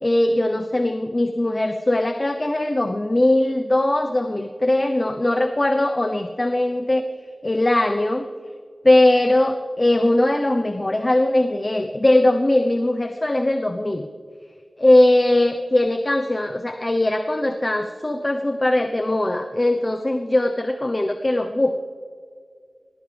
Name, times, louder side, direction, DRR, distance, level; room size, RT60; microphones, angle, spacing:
voice 1, 0.0-7.1 7.4-8.3 8.8-14.1 14.8-21.8, left 1 dB, 30° left, 6 dB, 0.9 m, -20 dB
21.0 x 19.5 x 3.5 m, 2.1 s
wide cardioid pair, 60°, 0 cm